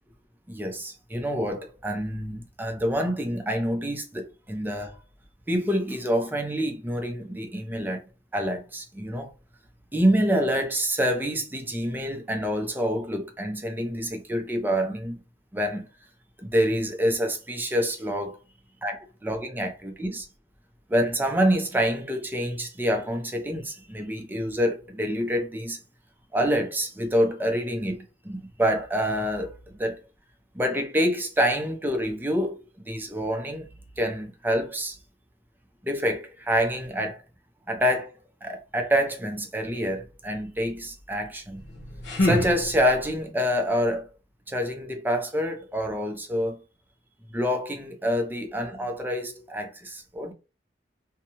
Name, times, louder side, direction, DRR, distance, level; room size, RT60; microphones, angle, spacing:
voice 1, 0.5-5.0 5.5-8.0 8.3-9.3 9.9-15.2 15.5-15.9 16.4-18.4 18.8-20.3 20.9-25.8 26.3-30.0 30.5-33.7 34.0-35.0 35.8-37.2 37.7-38.1 38.4-41.6 42.2-44.1 44.5-46.6 47.3-50.3, equal, 10° right, 0.5 m, -27 dB
sound 1, 41.5-43.2, left 1 dB, 80° left, 0.8 m, -28 dB
2.6 x 2.2 x 2.9 m
head